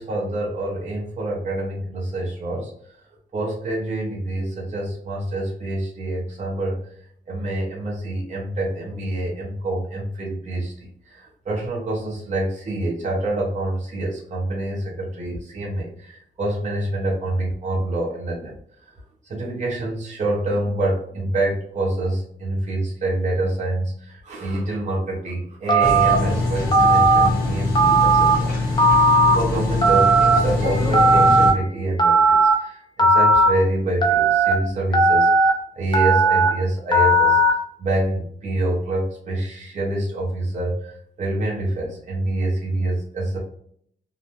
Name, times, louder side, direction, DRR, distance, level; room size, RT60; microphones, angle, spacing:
voice 1, 0.0-2.7 3.3-6.8 7.3-18.5 19.2-28.9 29.3-37.4 37.8-43.4, right 1 dB, 40° right, -3 dB, 0.7 m, -26 dB
Telephone, 25.7-26.1 26.7-27.3 27.7-28.4 28.8-29.3 29.8-30.4 30.9-31.5 32.0-32.5 33.0-33.5 34.0-34.5 34.9-35.5 35.9-36.5 36.9-37.5, right 2 dB, 25° left, 0.4 m, -16 dB
sound 1, 25.8-31.5, left 2 dB, 50° left, 0.9 m, -23 dB
2.7 x 2.1 x 2.9 m, 0.65 s
wide cardioid pair, 180°, 20 cm